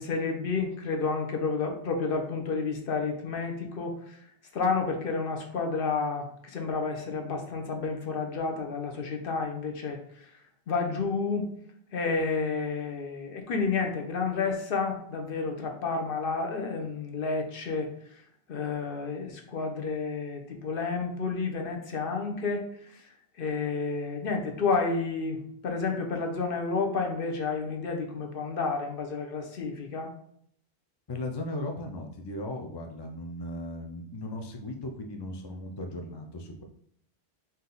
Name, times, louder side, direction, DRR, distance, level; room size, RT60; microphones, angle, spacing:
voice 1, 0.0-4.2 4.5-10.3 10.7-11.5 11.9-18.2 18.5-23.0 23.4-30.1, left 4 dB, 55° left, 3 dB, 0.9 m, -30 dB
voice 2, 31.1-36.6, left 1 dB, 35° left, 3 dB, 0.4 m, -37 dB
3.9 x 2.8 x 3.8 m, 0.66 s
omnidirectional pair, 1.1 m